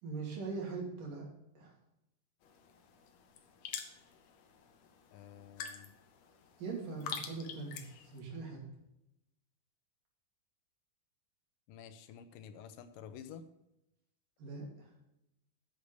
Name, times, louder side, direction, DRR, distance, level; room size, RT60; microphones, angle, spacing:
voice 1, 0.0-1.3 1.5-1.7 6.6-8.6 14.4-14.9, right 4 dB, 80° right, -2 dB, 4.4 m, -41 dB
sound 1, 2.4-8.2, left 7 dB, 65° left, 1.9 m, -47 dB
voice 2, 5.1-5.9 11.7-13.4, left 8 dB, 85° left, 10 dB, 2.5 m, -50 dB
8.6 x 7.9 x 6.8 m, 0.89 s
omnidirectional pair, 3.8 m